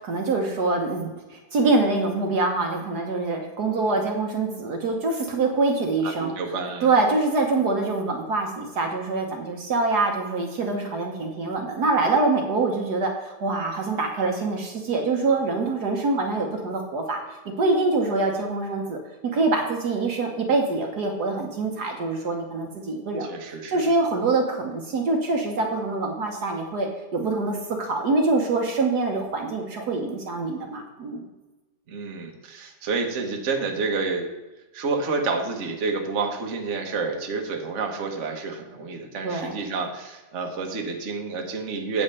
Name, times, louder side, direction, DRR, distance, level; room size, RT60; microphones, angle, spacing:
voice 1, 0.0-6.3 6.8-17.2 17.6-19.0 19.3-31.2 39.2-39.6, right 3 dB, 60° right, 2 dB, 1.5 m, -25 dB
voice 2, 6.0-6.9 23.2-23.8 31.9-34.3 34.7-42.0, right 4 dB, 45° right, 2 dB, 1.4 m, -29 dB
8.6 x 5.4 x 6.7 m, 1.1 s
omnidirectional pair, 2.1 m